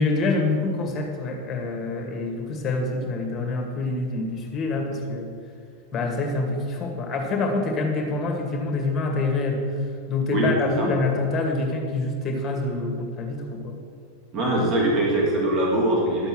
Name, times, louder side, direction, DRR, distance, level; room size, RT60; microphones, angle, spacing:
voice 1, 0.0-5.3 5.9-9.6 10.1-13.8, left 3 dB, 25° left, 2 dB, 2.2 m, -26 dB
voice 2, 10.3-10.9 14.3-16.3, right 1 dB, 30° right, -3 dB, 2.9 m, -22 dB
12.0 x 7.9 x 6.4 m, 2.2 s
figure-of-eight pair, 90°, 0 cm